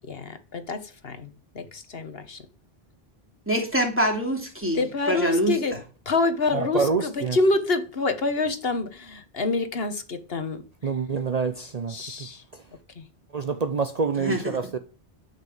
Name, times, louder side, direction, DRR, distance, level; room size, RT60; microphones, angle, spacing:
voice 1, 0.0-2.5 4.7-5.8 6.0-10.6 11.9-12.4 13.0-13.1, left 3 dB, 70° left, 1.5 m, -27 dB
voice 2, 3.5-4.8 5.1-5.6 14.2-14.7, equal, 10° right, 3.0 m, -25 dB
voice 3, 6.5-7.4 10.8-12.0 13.3-14.8, right 5 dB, 45° right, 0.8 m, -26 dB
10.5 x 6.1 x 7.3 m
omnidirectional pair, 1.0 m